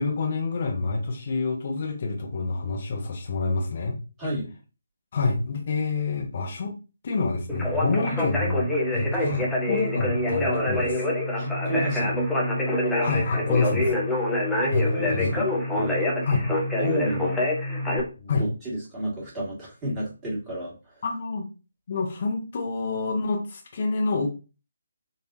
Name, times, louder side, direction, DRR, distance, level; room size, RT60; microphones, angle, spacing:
voice 1, 0.0-3.9 5.1-6.7 7.0-11.1 12.8-14.0 14.7-15.3 16.2-16.5 18.3-18.4 21.0-21.5 21.9-24.3, left 3 dB, 40° left, 1 dB, 1.0 m, -27 dB
voice 2, 4.2-4.5 8.0-8.2 9.2-9.5 11.3-12.2 14.5-16.0 16.8-17.4 18.2-21.0, right 1 dB, 15° right, -6 dB, 1.8 m, -32 dB
Conversation, 7.5-18.0, left 1 dB, 5° left, 0.9 m, -25 dB
4.0 x 2.7 x 2.7 m, 0.31 s
figure-of-eight pair, 145°, 0 cm